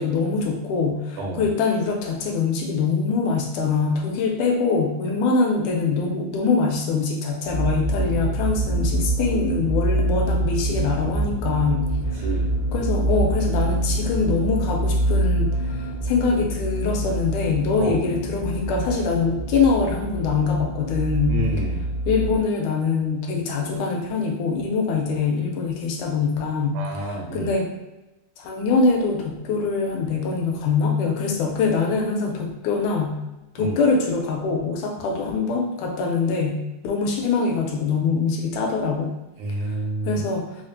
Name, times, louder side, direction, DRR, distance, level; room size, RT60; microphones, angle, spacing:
voice 1, 0.0-11.9 12.2-12.3 12.7-15.8 16.0-21.4 22.1-27.7 28.4-33.2 33.6-39.1 40.1-40.5, left 4 dB, 80° left, 1 dB, 1.9 m, -23 dB
voice 2, 1.2-1.5 12.2-12.5 17.8-18.0 21.3-21.9 26.7-27.5 33.6-33.8 39.4-40.2, right 2 dB, 75° right, 0 dB, 2.0 m, -29 dB
sound 1, 7.4-22.4, right 1 dB, 55° left, 0.5 m, -25 dB
5.0 x 2.3 x 2.6 m, 0.99 s
omnidirectional pair, 3.7 m